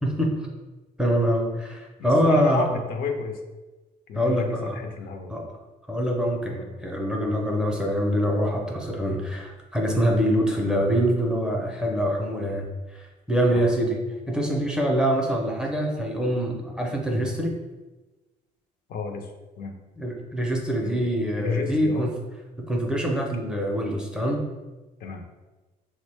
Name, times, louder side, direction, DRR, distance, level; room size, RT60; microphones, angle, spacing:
voice 1, 0.0-0.5 1.0-2.7 4.1-4.8 5.3-5.4 5.9-12.7 12.9-17.5 20.0-22.1 22.6-24.4, equal, 5° right, -1 dB, 0.5 m, -24 dB
voice 2, 2.0-3.4 4.1-5.5 13.5-13.6 18.9-19.3 19.6-19.7 20.8-21.1 21.4-22.1 25.0-25.2, left 5 dB, 60° left, 4 dB, 0.5 m, -31 dB
3.8 x 2.1 x 3.2 m, 1.2 s
cardioid pair, 110°, 17 cm